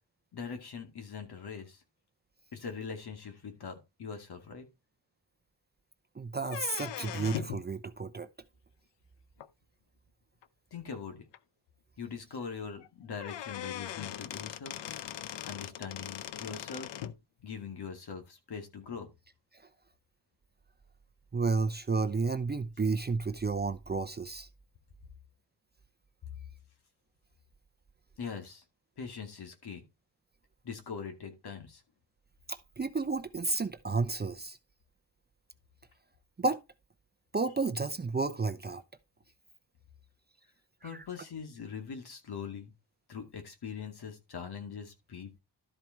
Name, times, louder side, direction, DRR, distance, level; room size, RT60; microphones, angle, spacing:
voice 1, 0.3-1.8 2.5-4.7 10.7-11.2 12.0-14.8 15.4-16.9 17.4-19.1 28.2-28.6 29.0-29.8 30.6-31.8 40.8-42.7 43.1-45.4, left 6 dB, 65° left, 2.4 m, -42 dB
voice 2, 6.2-8.3 21.3-24.5 32.5-34.6 36.4-36.6 37.3-38.8 40.8-41.0, right 4 dB, 25° right, 0.6 m, -31 dB
sound 1, 6.4-7.6 9.4-9.5 10.4-10.5 10.9-11.0 11.3-11.4 12.8-12.9 13.2-17.2, left 11 dB, 90° left, 0.7 m, -40 dB
12.5 x 4.6 x 4.5 m
cardioid pair, 90°, 42 cm